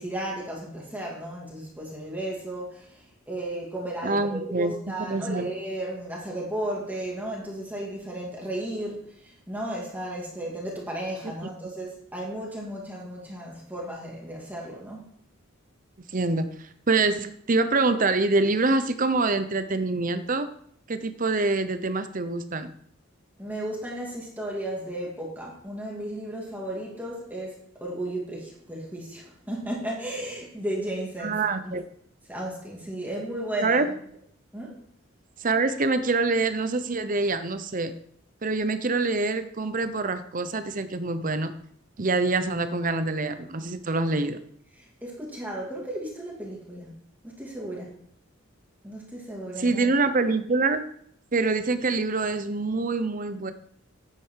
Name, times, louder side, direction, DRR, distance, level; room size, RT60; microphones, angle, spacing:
voice 1, 0.0-15.1 23.4-31.8 32.3-33.9 34.5-34.8 44.8-47.0 47.2-48.0 48.8-49.9, right 1 dB, 10° right, -3 dB, 2.4 m, -34 dB
voice 2, 4.0-4.7 5.0-5.5 16.1-16.5 16.9-20.5 20.9-22.7 31.2-31.8 33.6-33.9 35.4-37.9 38.4-41.5 42.0-44.4 49.6-50.8 51.3-53.5, right 3 dB, 40° right, 10 dB, 0.8 m, -25 dB
10.0 x 8.4 x 4.7 m, 0.66 s
head